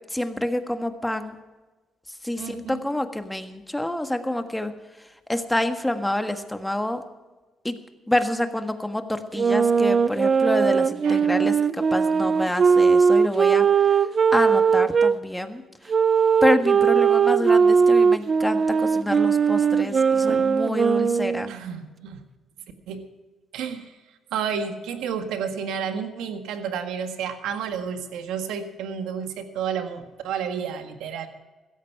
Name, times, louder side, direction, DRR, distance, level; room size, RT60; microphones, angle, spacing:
voice 1, 0.1-1.3 2.2-4.7 5.3-7.0 7.6-7.8 8.1-13.7 14.3-15.6 16.4-21.5, left 1 dB, 10° left, 7 dB, 1.6 m, -27 dB
voice 2, 2.4-2.9 11.0-11.3 20.3-20.5 21.5-22.3 22.9-23.1 23.5-24.0 24.3-31.3, right 7 dB, 90° right, 6 dB, 1.7 m, -31 dB
sound 1, 9.3-15.1 15.9-21.5, right 6 dB, 40° right, 0.5 m, -19 dB
16.5 x 14.0 x 4.7 m, 1.2 s
cardioid pair, 90°, 0 cm